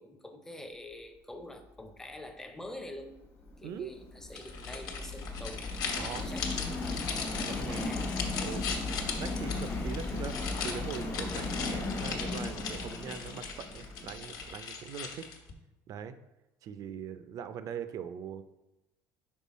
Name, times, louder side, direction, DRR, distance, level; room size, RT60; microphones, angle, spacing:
voice 1, 0.0-3.2 3.6-7.0 7.4-8.2, left 1 dB, 5° left, 6 dB, 0.6 m, -46 dB
Subway metro underground, 3.2-14.5, left 3 dB, 30° left, 1.0 m, -36 dB
voice 2, 3.6-3.9 5.9-6.3 7.4-7.9 8.4-8.7 9.2-10.4 10.6-15.3 15.9-16.2 16.6-18.4, right 8 dB, 50° right, 11 dB, 0.5 m, -41 dB
sound 1, 4.3-15.5, left 5 dB, 60° left, 1.1 m, -39 dB
5.5 x 4.5 x 4.1 m, 0.98 s
cardioid pair, 135°, 8 cm